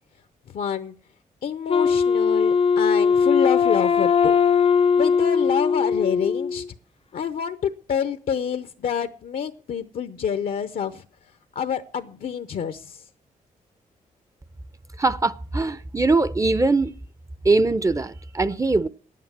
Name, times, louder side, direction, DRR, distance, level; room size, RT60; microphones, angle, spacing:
voice 1, 0.5-0.9 1.4-4.3 5.0-6.6 7.1-11.0 11.5-13.0, left 8 dB, 70° left, 0.7 m, -27 dB
Wind instrument woodwind instrument, 1.7-6.7, left 6 dB, 40° left, 0.5 m, -20 dB
voice 2, 15.0-16.9 17.4-18.9, right 3 dB, 20° right, 0.6 m, -21 dB
10.0 x 9.4 x 7.4 m
cardioid pair, 75°, 15 cm